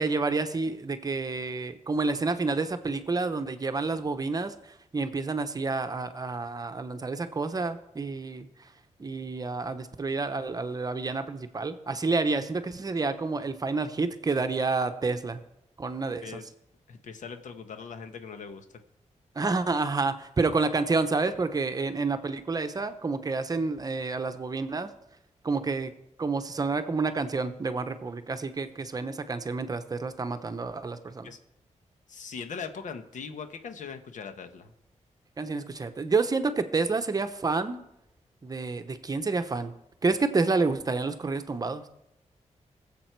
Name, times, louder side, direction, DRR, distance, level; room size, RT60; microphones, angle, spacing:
voice 1, 0.0-4.5 4.9-8.5 9.0-15.4 15.8-16.4 19.4-24.9 25.4-25.9 26.2-31.3 35.4-37.8 38.4-39.7 40.0-41.8, right 3 dB, 30° right, 9 dB, 0.8 m, -29 dB
voice 2, 16.9-18.7 31.2-31.4 32.1-34.7, left 6 dB, 90° left, 8 dB, 1.2 m, -40 dB
20.0 x 7.5 x 4.6 m, 0.83 s
wide cardioid pair, 155°, 13 cm